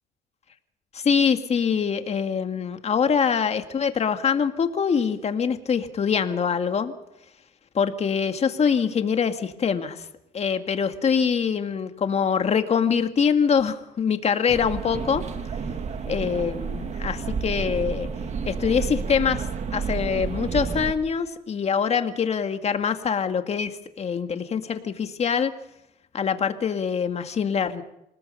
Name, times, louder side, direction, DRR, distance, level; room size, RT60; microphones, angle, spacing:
voice 1, 0.9-6.9 7.7-10.1 10.3-15.2 16.1-18.1 18.5-25.5 26.1-27.8, left 6 dB, 40° left, 8 dB, 2.0 m, -24 dB
sound 1, 14.5-20.9, right 5 dB, 40° right, 2.1 m, -30 dB
27.0 x 19.5 x 5.7 m, 0.85 s
cardioid pair, 110°, 17 cm